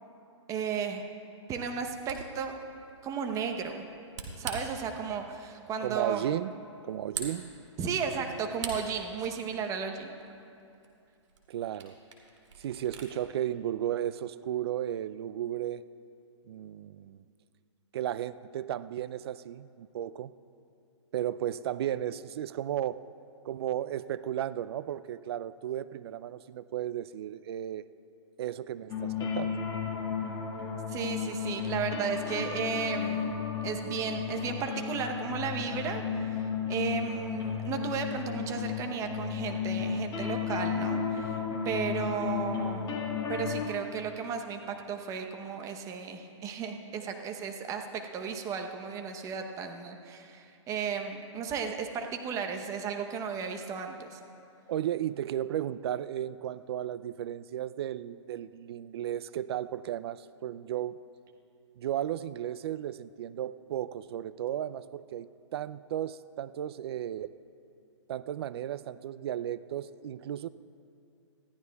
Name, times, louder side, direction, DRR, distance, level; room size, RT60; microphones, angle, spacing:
voice 1, 0.5-1.0 1.5-2.6 3.0-3.8 4.4-6.2 7.8-10.1 30.9-33.3 33.6-36.4 36.7-41.4 41.6-42.9 43.3-54.2, right 6 dB, 20° right, 5 dB, 0.8 m, -34 dB
Camera, 1.8-13.1, right 4 dB, 70° right, 2.0 m, -45 dB
voice 2, 5.8-6.5 6.8-7.5 11.5-12.0 12.6-15.8 16.5-17.2 17.9-20.3 21.1-23.0 23.4-27.8 28.4-29.6 54.7-61.0 61.8-67.3 68.1-70.5, right 11 dB, 55° right, 16 dB, 0.4 m, -34 dB
sound 1, 28.9-43.7, left 6 dB, 25° left, 1.7 m, -33 dB
20.0 x 14.0 x 2.3 m, 2.6 s
hypercardioid pair, 135°, 16 cm